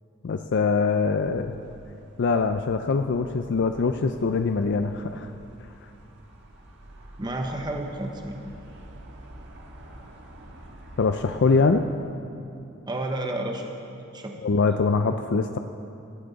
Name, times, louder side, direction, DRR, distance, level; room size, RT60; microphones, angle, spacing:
voice 1, 0.2-1.5 2.2-5.3 11.0-11.8 14.4-15.6, left 4 dB, 55° left, 7 dB, 0.4 m, -23 dB
sound 1, 1.2-11.7, right 1 dB, 55° right, 1.5 m, -48 dB
voice 2, 7.2-8.5 12.9-14.3, right 1 dB, 20° right, 2 dB, 0.9 m, -31 dB
16.0 x 13.0 x 4.0 m, 2.7 s
head